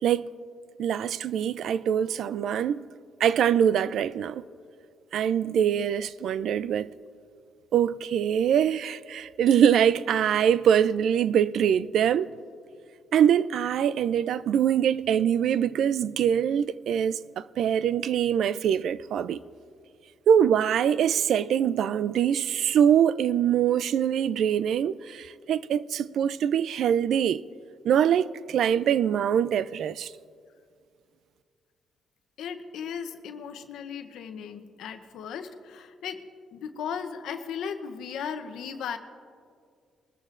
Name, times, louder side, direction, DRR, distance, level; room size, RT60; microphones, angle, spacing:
voice 1, 0.8-2.9 3.2-4.4 5.1-6.9 7.7-12.3 13.1-19.4 20.3-27.4 27.8-30.1, right 9 dB, 70° right, 0.3 m, -23 dB
voice 2, 32.4-36.2 36.5-39.0, left 7 dB, 80° left, 0.7 m, -36 dB
22.0 x 13.5 x 2.5 m
cardioid pair, 90°, 0 cm